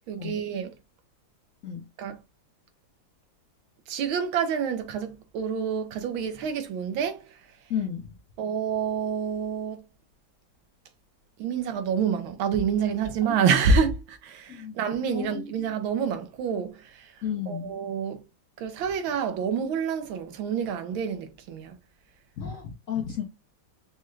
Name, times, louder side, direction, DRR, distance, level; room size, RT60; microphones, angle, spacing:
voice 1, 0.1-0.7 2.0-2.2 3.9-7.2 8.4-9.8 11.4-17.1 17.5-18.2 18.6-21.8, right 6 dB, 85° right, 1.6 m, -27 dB
voice 2, 7.7-8.1 13.3-13.5 14.5-14.8 15.1-15.5 17.2-17.8 22.4-23.2, left 8 dB, 60° left, 0.9 m, -33 dB
5.4 x 2.4 x 3.1 m
omnidirectional pair, 2.1 m